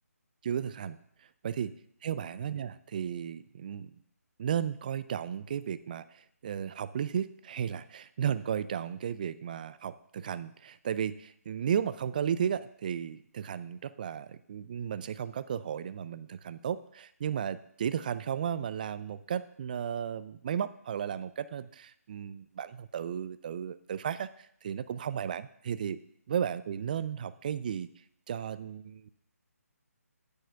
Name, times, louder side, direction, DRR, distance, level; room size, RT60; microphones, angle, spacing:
voice 1, 0.4-1.0 1.4-1.7 2.0-4.0 4.4-26.0 26.3-27.9 28.3-29.1, right 8 dB, 30° right, 14 dB, 0.3 m, -34 dB
9.1 x 4.7 x 5.6 m, 0.70 s
figure-of-eight pair, 155°, 9 cm